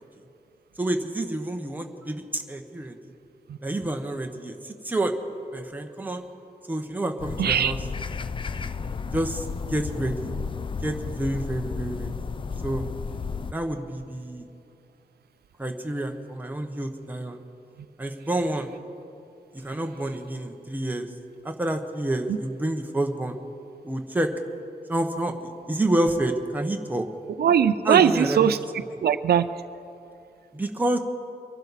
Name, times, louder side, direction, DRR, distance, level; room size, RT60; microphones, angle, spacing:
voice 1, 0.8-3.0 3.6-5.1 5.5-6.2 6.7-7.8 9.1-10.3 10.8-12.3 12.6-12.9 13.5-14.5 15.6-17.4 18.0-18.7 19.6-21.1 21.4-23.4 23.8-24.3 24.9-27.0 27.8-28.4 30.5-31.0, right 1 dB, 10° right, 4 dB, 0.9 m, -28 dB
sound 1, 7.2-13.5, left 5 dB, 30° left, 0.4 m, -33 dB
voice 2, 7.4-7.7 22.3-22.4 27.4-28.6 29.0-29.6, right 8 dB, 85° right, 12 dB, 0.5 m, -20 dB
24.0 x 11.5 x 4.1 m, 2.7 s
wide cardioid pair, 160°, 16 cm